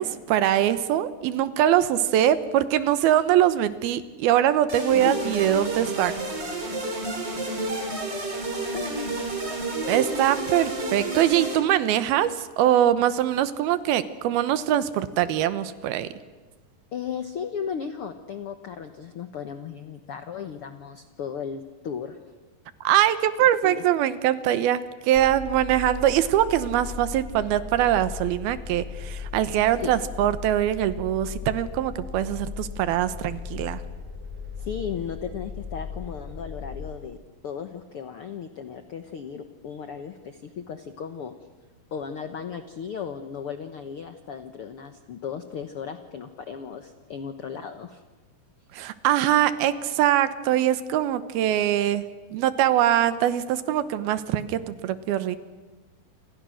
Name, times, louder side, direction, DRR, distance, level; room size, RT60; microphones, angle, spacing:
voice 1, 0.0-6.2 9.9-16.1 22.8-33.8 48.7-52.0 52.3-55.4, right 11 dB, 90° right, 13 dB, 3.0 m, -23 dB
sound 1, 4.7-11.5, right 2 dB, 30° right, 4.2 m, -30 dB
voice 2, 5.0-5.5 8.7-9.2 10.1-10.3 16.9-22.2 23.4-23.8 29.8-29.9 34.6-37.2 37.4-41.3 41.9-48.0, left 7 dB, 85° left, 8 dB, 1.2 m, -35 dB
sound 2, 25.1-36.9, left 6 dB, 10° right, 2.9 m, -37 dB
29.0 x 27.0 x 6.5 m, 1.3 s
omnidirectional pair, 4.3 m